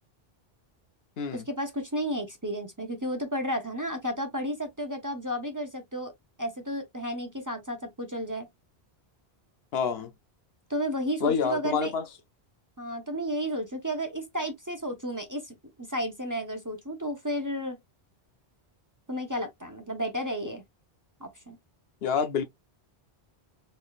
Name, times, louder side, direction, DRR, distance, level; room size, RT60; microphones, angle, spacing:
voice 1, 1.3-6.1 6.4-8.5 10.7-11.9 12.8-17.8 19.1-20.6 21.2-21.6, equal, 20° right, 0.8 m, -32 dB
voice 2, 9.7-10.1 11.2-12.0 22.0-22.4, left 6 dB, 70° left, 0.9 m, -27 dB
4.5 x 3.2 x 2.4 m
omnidirectional pair, 1.1 m